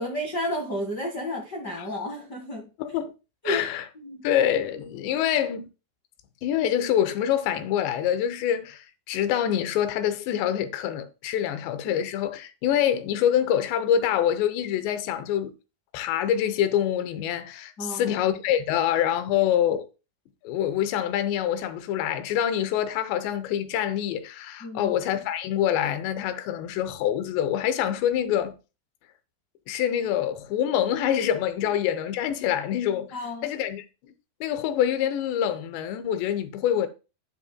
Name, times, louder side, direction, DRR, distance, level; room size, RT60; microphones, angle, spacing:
voice 1, 0.0-2.6 3.4-3.6 3.9-4.2 17.8-18.1 24.6-24.9 33.1-33.5, equal, 70° left, 0.9 m, -32 dB
voice 2, 2.8-3.1 3.4-3.8 4.2-5.7 6.4-15.5 15.9-19.9 20.4-28.6 29.7-33.2 33.4-34.1 34.4-36.9, left 10 dB, 90° left, 3.0 m, -25 dB
10.5 x 9.3 x 2.2 m
omnidirectional pair, 4.9 m